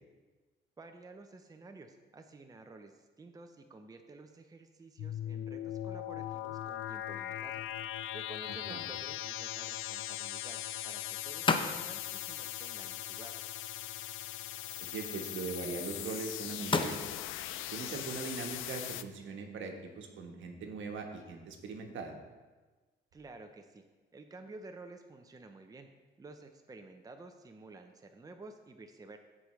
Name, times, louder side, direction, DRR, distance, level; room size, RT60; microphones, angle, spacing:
voice 1, 0.8-7.6 8.1-13.5 23.1-23.8 24.1-25.9 26.2-29.2, right 3 dB, 20° right, 6 dB, 0.6 m, -52 dB
sound 1, 5.0-19.0, left 13 dB, 85° left, 0.4 m, -40 dB
sound 2, 7.5-20.3, left 4 dB, 25° left, 0.6 m, -41 dB
voice 2, 8.5-8.8 14.8-17.0 17.7-22.1, right 4 dB, 75° right, 3 dB, 1.3 m, -40 dB
14.0 x 4.9 x 3.2 m, 1.3 s
cardioid pair, 90°, 20 cm